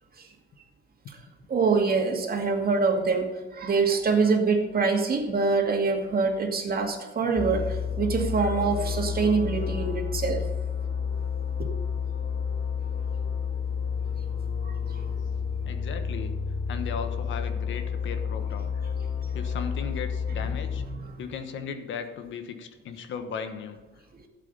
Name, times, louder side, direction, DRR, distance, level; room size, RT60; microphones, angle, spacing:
voice 1, 1.5-10.4 11.6-11.7 14.6-15.0 20.9-21.0 24.1-24.2, right 4 dB, 50° right, 3 dB, 2.2 m, -25 dB
sound 1, 7.4-20.9, left 6 dB, 55° left, 2.2 m, -30 dB
voice 2, 15.6-16.3 16.7-18.9 19.3-20.8 21.2-23.8, left 6 dB, 75° left, 8 dB, 1.3 m, -37 dB
12.0 x 8.2 x 5.5 m, 1.3 s
cardioid pair, 90°, 20 cm